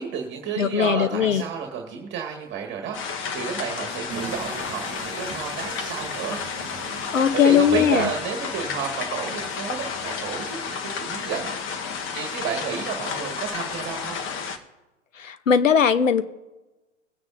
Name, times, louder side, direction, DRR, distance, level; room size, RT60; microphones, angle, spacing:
voice 1, 0.0-3.0 3.3-6.4 7.3-11.5 12.1-14.2, right 7 dB, 30° right, 1 dB, 1.8 m, -31 dB
voice 2, 0.6-1.4 7.1-8.1 15.2-16.2, left 8 dB, 90° left, 13 dB, 0.9 m, -19 dB
sound 1, 2.9-14.6, left 6 dB, 35° left, 1.2 m, -32 dB
sound 2, 4.1-9.5, right 5 dB, 15° right, 1.0 m, -41 dB
21.5 x 9.4 x 2.6 m, 1.1 s
hypercardioid pair, 100°, 38 cm